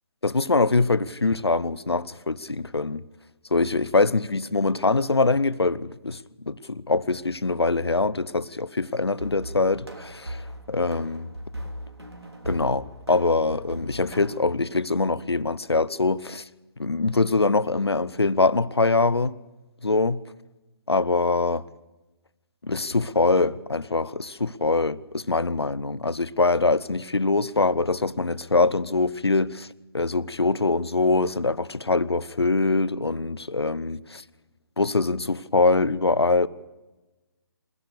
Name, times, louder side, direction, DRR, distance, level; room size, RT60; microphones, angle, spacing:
voice 1, 0.2-3.0 3.5-6.2 6.4-11.3 12.5-16.5 16.8-19.4 19.8-20.2 20.9-21.6 22.6-29.7 29.9-34.2 34.8-36.5, left 3 dB, 80° left, 0.9 m, -23 dB
sound 1, 9.2-14.4, equal, 90° right, 3.5 m, -38 dB
27.5 x 16.0 x 6.8 m
figure-of-eight pair, 140°, 13 cm